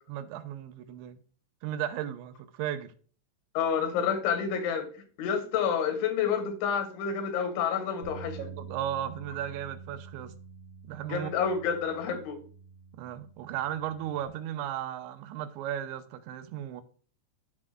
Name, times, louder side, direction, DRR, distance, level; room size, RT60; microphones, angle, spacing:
voice 1, 0.1-1.2 1.6-2.9 8.4-10.3 10.8-11.3 12.9-16.8, right 11 dB, 80° right, 3.0 m, -35 dB
voice 2, 3.6-4.9 5.2-8.5 11.1-12.4, left 7 dB, 90° left, 4.0 m, -29 dB
sound 1, 8.0-14.3, right 4 dB, 40° right, 2.5 m, -47 dB
11.5 x 7.3 x 2.2 m
omnidirectional pair, 5.2 m